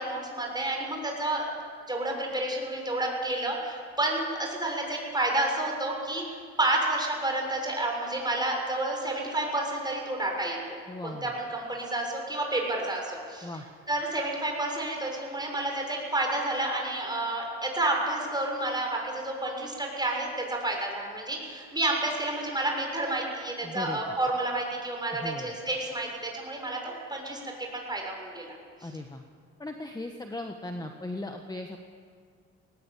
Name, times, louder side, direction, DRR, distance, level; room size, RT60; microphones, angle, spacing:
voice 1, 0.0-1.5 1.9-10.8 11.0-13.5 13.9-27.4 27.7-28.9, right 2 dB, 15° right, 0 dB, 6.7 m, -30 dB
voice 2, 10.9-11.3 13.4-13.7 23.6-24.2 25.1-25.5 28.8-29.2 29.6-31.8, left 2 dB, 15° left, 4 dB, 1.5 m, -38 dB
19.5 x 19.0 x 8.5 m, 2.1 s
cardioid pair, 90°, 30 cm